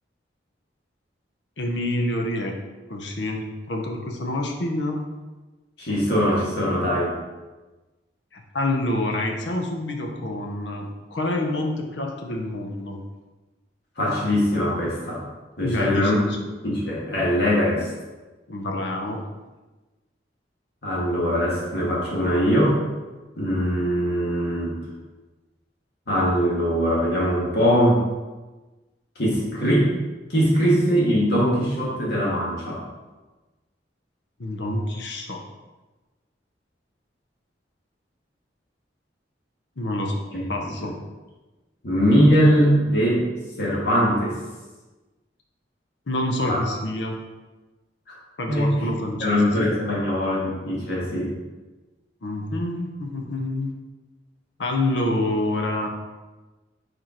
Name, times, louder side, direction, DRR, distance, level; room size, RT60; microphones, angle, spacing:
voice 1, 1.6-2.5 2.9-5.0 8.3-13.0 15.6-16.4 18.5-19.2 34.4-35.4 39.8-40.2 40.5-40.9 46.1-47.2 48.4-49.9 52.2-53.7 54.6-55.9, left 1 dB, 80° left, 2 dB, 0.8 m, -27 dB
voice 2, 5.8-7.1 14.0-15.2 15.6-16.1 16.6-17.9 20.8-22.8 23.4-24.8 26.1-28.0 29.2-29.9 30.3-32.8 40.3-40.5 40.8-40.9 41.8-43.2 43.6-44.3 46.4-46.6 48.1-48.2 48.5-48.9 49.2-51.3, equal, 65° left, -6 dB, 1.7 m, -21 dB
5.0 x 4.4 x 4.4 m, 1.2 s
head